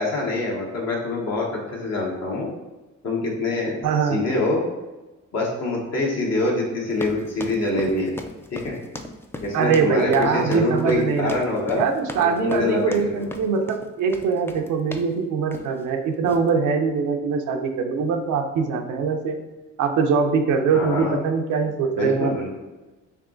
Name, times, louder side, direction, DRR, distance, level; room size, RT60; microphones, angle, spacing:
voice 1, 0.0-2.5 3.0-3.8 4.1-4.6 5.3-8.2 8.5-8.8 9.4-11.8 12.4-13.2 20.7-21.2 21.9-22.5, left 2 dB, 60° left, -3 dB, 1.2 m, -25 dB
voice 2, 3.8-4.2 9.5-11.3 11.7-19.4 19.8-22.3, right 5 dB, 85° right, 4 dB, 0.7 m, -22 dB
sound 1, 6.9-15.1 15.5-15.8 16.2-16.5, left 1 dB, 10° left, 0.3 m, -37 dB
3.4 x 3.0 x 3.8 m, 1.1 s
cardioid pair, 90°, 30 cm